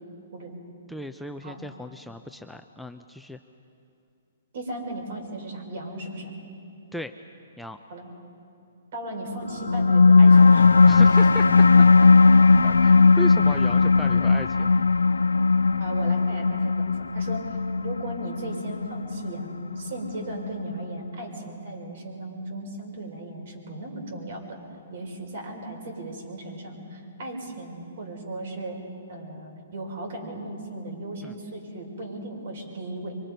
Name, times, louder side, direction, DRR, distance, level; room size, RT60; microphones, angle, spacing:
voice 1, 0.9-3.4 6.9-7.1 7.6-7.8 10.8-11.9 12.6-14.8 31.2-31.4, left 1 dB, ahead, 6 dB, 0.6 m, -36 dB
voice 2, 4.5-6.3 7.9-8.1 8.9-10.8 15.8-17.6 17.8-24.6 24.9-28.8 29.1-33.1, right 1 dB, 55° right, 1 dB, 5.6 m, -36 dB
sound 1, 9.5-20.5, left 4 dB, 85° left, 0.5 m, -17 dB
25.5 x 23.5 x 5.4 m, 2.6 s
hypercardioid pair, 130°, 0 cm